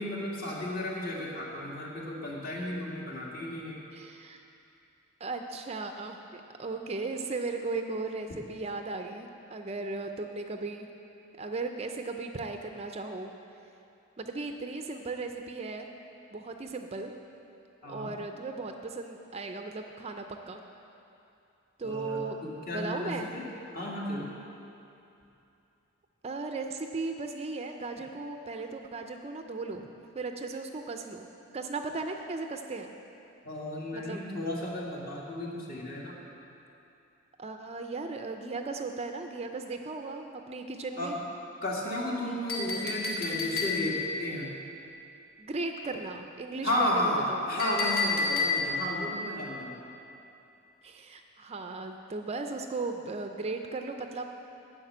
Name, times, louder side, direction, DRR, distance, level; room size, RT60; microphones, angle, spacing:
voice 1, 0.0-3.8 17.8-18.1 21.8-23.4 23.7-24.4 33.4-36.2 41.0-41.2 41.6-44.5 46.6-49.8, left 1 dB, 45° left, -4 dB, 2.0 m, -33 dB
voice 2, 3.9-4.4 5.2-10.9 11.4-13.3 14.2-15.9 16.3-17.1 17.9-20.6 21.8-22.4 22.7-23.3 26.2-29.9 30.1-31.3 31.5-32.9 33.9-34.2 37.4-41.2 45.4-47.6 50.8-54.2, right 3 dB, 30° right, 5 dB, 0.5 m, -36 dB
Chink clink, 42.5-44.1 47.6-48.9, left 4 dB, 70° left, 2.5 m, -30 dB
11.0 x 6.6 x 8.6 m, 2.8 s
head